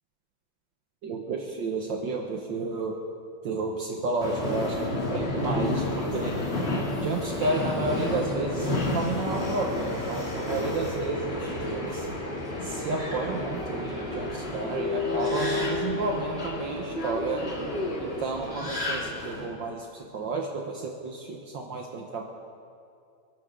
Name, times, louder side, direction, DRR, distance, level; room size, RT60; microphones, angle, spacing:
voice 1, 1.0-3.0 3.4-6.4 7.0-12.1 12.6-17.4 18.0-22.2, right 3 dB, 65° right, 1 dB, 1.8 m, -31 dB
Subway metro underground, 4.2-19.5, left 2 dB, 30° left, 2.2 m, -30 dB
29.0 x 12.0 x 3.8 m, 2.4 s
omnidirectional pair, 2.2 m